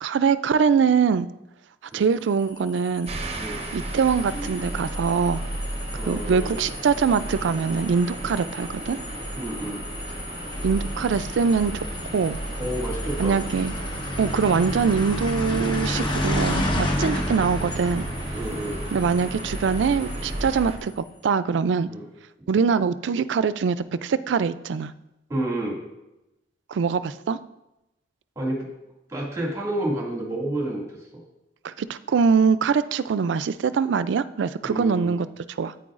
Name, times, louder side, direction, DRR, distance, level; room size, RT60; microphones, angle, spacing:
voice 1, 0.0-1.3 1.9-3.1 3.7-5.4 6.0-9.0 10.6-11.9 12.1-12.4 13.2-13.7 14.2-18.1 18.9-21.9 22.5-24.9 26.7-27.4 31.6-35.3 35.6-35.7, right 6 dB, 70° right, 15 dB, 0.4 m, -23 dB
sound 1, 2.4-20.9, left 1 dB, 25° left, 1.0 m, -32 dB
sound 2, 3.0-20.8, right 1 dB, 35° right, 0.8 m, -34 dB
voice 2, 5.9-6.6 9.4-9.8 12.6-13.4 18.3-18.8 21.9-22.1 25.3-25.8 28.4-28.7 29.1-31.2 34.6-35.1, right 1 dB, 15° right, -2 dB, 2.1 m, -30 dB
9.9 x 8.9 x 2.5 m, 0.94 s
head